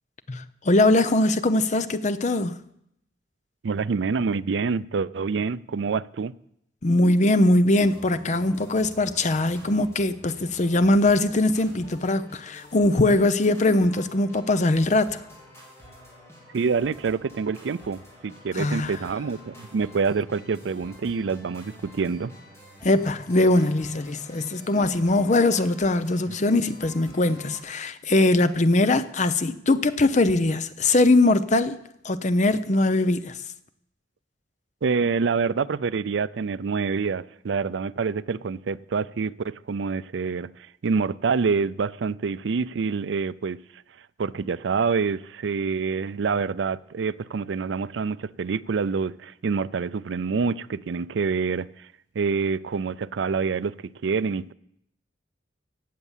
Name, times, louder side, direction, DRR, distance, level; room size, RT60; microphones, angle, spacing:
voice 1, 0.3-2.6 6.8-15.2 18.5-19.0 22.8-31.8 32.0-33.4, left 2 dB, 40° left, 0.7 m, -21 dB
voice 2, 3.6-6.3 16.5-22.3 34.8-43.6 44.2-51.9 52.2-54.5, right 5 dB, 80° right, 0.4 m, -26 dB
sound 1, 7.8-27.6, equal, 15° left, 3.9 m, -48 dB
16.5 x 8.2 x 7.3 m
head